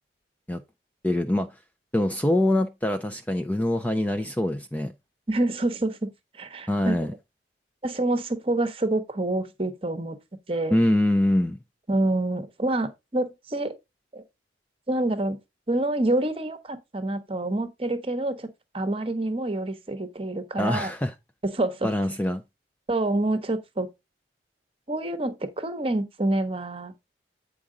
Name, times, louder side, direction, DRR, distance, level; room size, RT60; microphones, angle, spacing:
voice 1, 1.0-1.6 1.9-4.9 6.7-7.1 10.7-11.6 20.6-21.1 21.8-22.4, left 1 dB, 10° left, 0.4 m, -24 dB
voice 2, 5.3-6.9 7.8-10.2 10.5-10.8 11.9-13.7 14.1-14.2 14.9-15.4 15.7-18.5 18.7-20.9 21.4-21.9 22.9-23.9 24.9-26.9, right 2 dB, 30° right, 0.9 m, -27 dB
8.6 x 4.8 x 3.7 m
head